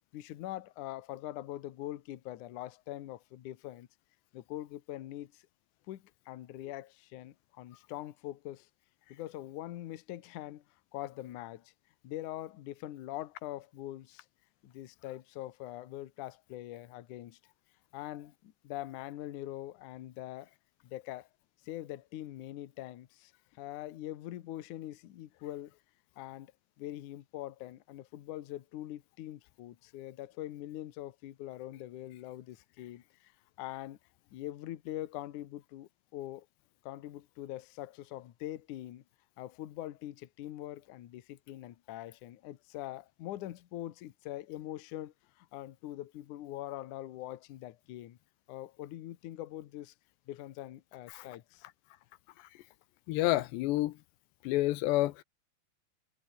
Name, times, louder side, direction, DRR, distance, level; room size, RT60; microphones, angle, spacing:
voice 1, 0.1-3.9 4.3-5.4 5.9-8.7 9.1-10.6 10.9-11.7 12.0-14.3 14.6-17.4 17.9-20.5 20.8-21.3 21.6-25.7 26.2-26.5 26.8-33.3 33.6-34.0 34.3-36.5 36.8-39.0 39.4-48.2 48.5-49.9 50.3-51.7, left 14 dB, 65° left, 2.1 m, -43 dB
voice 2, 53.1-54.0 54.4-55.2, left 17 dB, 85° left, 3.0 m, -29 dB
omnidirectional pair, 5.0 m